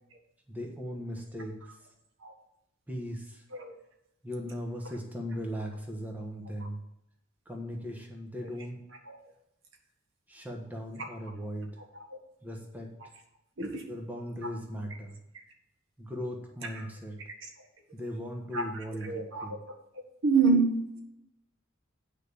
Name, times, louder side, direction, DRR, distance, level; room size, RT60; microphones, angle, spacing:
voice 1, 0.5-1.8 2.9-3.4 4.2-6.8 7.4-8.8 10.3-11.7 12.4-12.9 13.9-15.2 16.0-17.2 17.9-19.6, equal, 10° right, 1 dB, 1.3 m, -38 dB
voice 2, 19.0-19.6 19.9-20.7, right 4 dB, 70° right, 3 dB, 1.7 m, -27 dB
9.2 x 5.1 x 7.0 m, 0.83 s
head